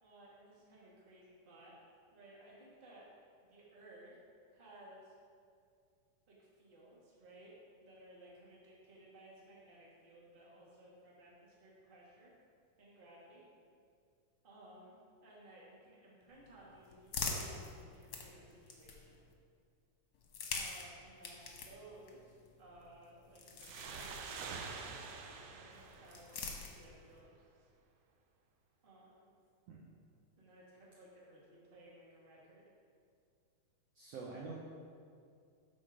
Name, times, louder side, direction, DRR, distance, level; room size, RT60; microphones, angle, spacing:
voice 1, 0.0-1.7 2.1-3.1 3.4-4.2 4.5-5.1 6.3-12.3 12.8-13.4 14.4-14.9 15.2-19.2 20.5-24.9 25.2-27.7 28.8-29.3 30.4-32.7, right 1 dB, 25° right, -5 dB, 1.3 m, -58 dB
sound 1, 16.3-19.3 20.1-24.7 25.7-27.2, left 4 dB, 65° left, 1.5 m, -45 dB
sound 2, 23.6-27.0, right 5 dB, 85° right, 1.4 m, -47 dB
voice 2, 33.9-34.6, right 4 dB, 70° right, -4 dB, 1.6 m, -46 dB
13.0 x 4.4 x 5.0 m, 2.3 s
omnidirectional pair, 3.7 m